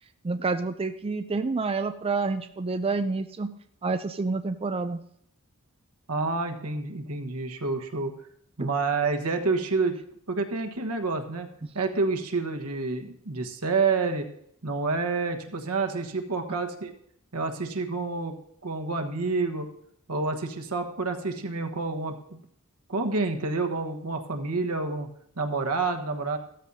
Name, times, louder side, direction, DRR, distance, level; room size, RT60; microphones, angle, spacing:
voice 1, 0.2-3.5 3.8-5.0 8.6-8.7 11.6-11.7, right 3 dB, 25° right, 8 dB, 0.4 m, -28 dB
voice 2, 6.1-8.1 8.6-10.0 10.3-11.5 11.7-14.3 14.6-16.9 17.3-18.3 18.6-19.7 20.1-22.4 22.9-25.1 25.4-26.4, right 3 dB, 85° right, 5 dB, 1.3 m, -28 dB
15.5 x 13.5 x 2.8 m, 0.69 s
head